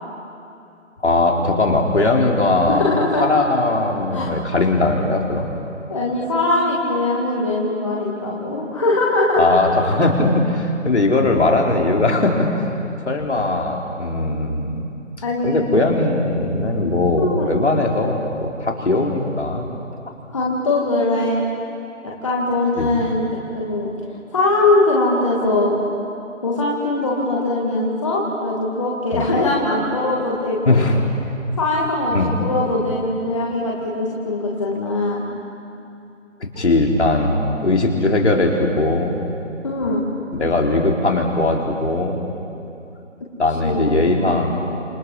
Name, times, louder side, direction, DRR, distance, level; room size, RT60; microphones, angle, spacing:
voice 1, 1.0-2.8 3.2-5.5 9.4-12.5 13.1-14.8 15.4-19.7 22.8-23.0 29.1-29.3 30.7-31.0 32.1-32.4 36.6-39.2 40.3-42.2 43.4-44.6, left 2 dB, 60° left, 1 dB, 3.9 m, -19 dB
voice 2, 2.5-3.3 4.1-4.3 5.9-9.4 15.2-15.7 17.2-17.5 20.3-21.5 22.0-23.3 23.5-23.9 24.3-25.8 26.4-30.8 31.6-35.2 39.6-40.1 43.6-43.8 44.2-44.3, left 2 dB, 25° left, -4 dB, 2.2 m, -21 dB
30.0 x 28.0 x 5.5 m, 2.7 s
figure-of-eight pair, 170°, 38 cm